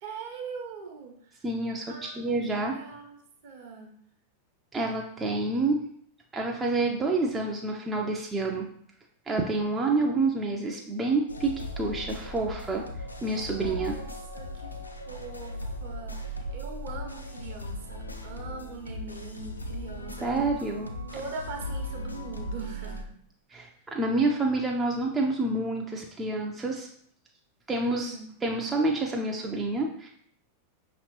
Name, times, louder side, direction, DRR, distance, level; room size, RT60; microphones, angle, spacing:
voice 1, 0.0-1.4 1.9-3.9 13.4-14.1 14.3-14.7 15.1-20.5 21.1-23.1 27.8-28.4, right 4 dB, 50° right, 2 dB, 0.9 m, -41 dB
voice 2, 1.4-2.7 4.7-5.9 6.3-8.7 9.3-12.8 13.2-14.0 20.2-20.9 23.5-26.9 27.7-30.1, right 2 dB, 15° right, 0 dB, 0.5 m, -28 dB
sound 1, 11.3-23.0, left 1 dB, 80° left, 0.4 m, -38 dB
5.6 x 3.0 x 3.1 m, 0.65 s
figure-of-eight pair, 90°, 0 cm